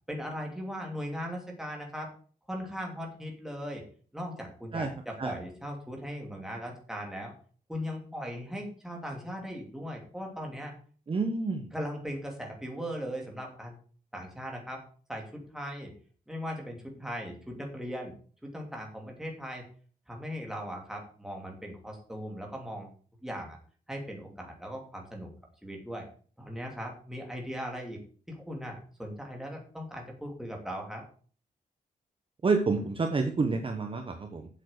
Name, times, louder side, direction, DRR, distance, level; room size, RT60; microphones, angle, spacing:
voice 1, 0.1-2.1 2.5-3.8 4.1-7.3 7.7-10.7 11.7-13.7 14.1-14.8 15.1-15.9 16.3-18.1 18.5-19.6 20.1-22.9 23.2-23.6 23.9-25.3 25.6-26.1 26.4-28.0 28.3-31.0, equal, 5° right, 0 dB, 3.0 m, -38 dB
voice 2, 11.1-11.7 32.4-34.5, right 4 dB, 35° right, 5 dB, 1.1 m, -28 dB
8.0 x 7.5 x 6.7 m, 0.43 s
wide cardioid pair, 150°, 16 cm